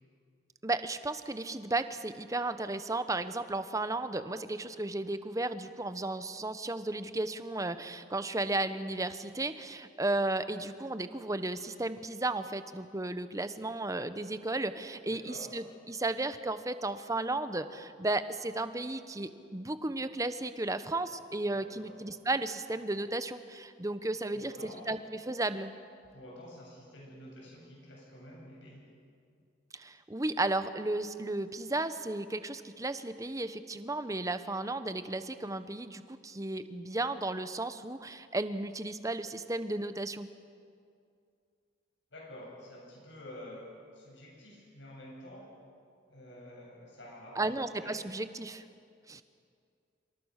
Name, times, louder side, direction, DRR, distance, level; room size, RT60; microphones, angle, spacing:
voice 1, 0.6-25.7 29.7-40.3 47.4-48.6 49.1-49.2, right 2 dB, 20° right, 11 dB, 1.0 m, -34 dB
voice 2, 15.1-15.5 21.5-22.0 24.3-24.9 26.1-28.9 42.1-43.7 43.9-45.6 46.1-47.9, left 1 dB, 75° left, -3 dB, 7.8 m, -49 dB
27.0 x 26.0 x 6.6 m, 2.3 s
head